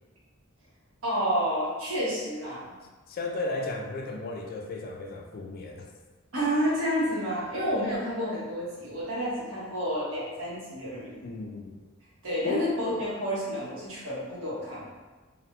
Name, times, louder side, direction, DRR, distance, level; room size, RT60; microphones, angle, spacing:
voice 1, 1.0-2.7 6.3-11.3 12.2-14.9, equal, 70° right, -8 dB, 1.1 m, -30 dB
voice 2, 3.1-5.9 11.2-11.8 12.4-12.7, left 3 dB, 45° left, 2 dB, 0.3 m, -34 dB
2.9 x 2.3 x 2.7 m, 1.3 s
head